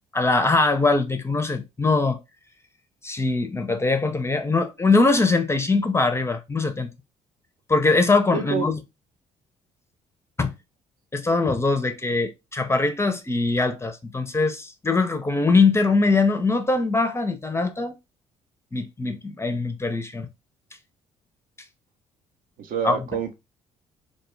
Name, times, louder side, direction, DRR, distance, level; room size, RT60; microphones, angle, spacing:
voice 1, 0.1-2.2 3.0-6.9 7.7-8.8 10.4-10.5 11.1-17.9 18.7-20.3 22.8-23.0, left 3 dB, 15° left, 0.4 m, -22 dB
voice 2, 8.3-8.7 22.6-23.3, right 7 dB, 55° right, 0.5 m, -27 dB
2.1 x 2.1 x 3.0 m
hypercardioid pair, 55°, 17 cm